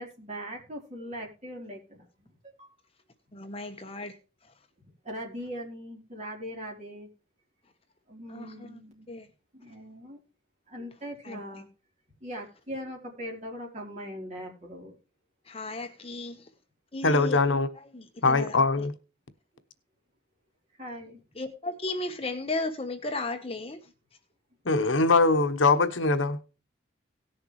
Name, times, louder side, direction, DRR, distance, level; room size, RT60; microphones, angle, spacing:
voice 1, 0.0-2.7 5.0-7.1 8.1-9.1 9.5-10.2 10.7-11.7 12.2-15.0 20.8-21.2, equal, 35° right, 3.9 m, -40 dB
voice 2, 3.3-4.1 8.3-8.8 9.1-9.3 11.2-11.6 15.5-16.4 16.9-17.4 17.9-18.6 21.4-23.8, left 2 dB, 30° left, 1.1 m, -35 dB
voice 3, 17.0-17.7 18.2-18.9 24.6-26.4, left 3 dB, 75° left, 1.1 m, -22 dB
18.0 x 6.9 x 3.2 m
head